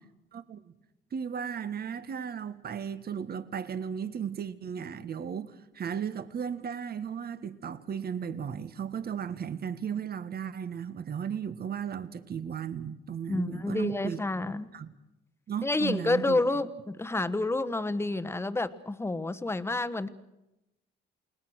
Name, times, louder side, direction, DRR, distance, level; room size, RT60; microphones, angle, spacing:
voice 1, 1.1-14.2 14.7-14.9 15.5-16.4, right 7 dB, 50° right, 1.5 m, -35 dB
voice 2, 13.3-14.7 15.6-20.1, left 2 dB, 10° left, 1.2 m, -29 dB
29.0 x 18.5 x 6.4 m
cardioid pair, 90°, 20 cm